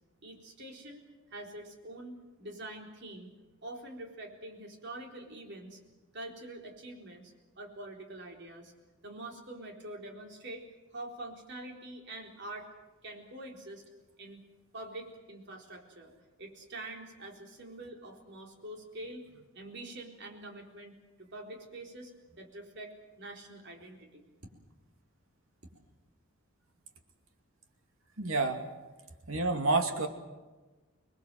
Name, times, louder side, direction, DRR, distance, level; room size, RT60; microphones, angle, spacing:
voice 1, 0.2-1.0 1.3-3.3 3.6-5.8 6.1-8.7 9.0-10.7 10.9-12.7 13.0-13.8 14.2-14.4 14.7-16.1 16.4-19.3 19.5-22.1 22.4-24.3, right 1 dB, 60° right, 1 dB, 4.0 m, -45 dB
voice 2, 28.2-28.6 29.3-30.1, right 3 dB, 80° right, 5 dB, 2.5 m, -28 dB
26.0 x 21.0 x 7.7 m, 1.2 s
head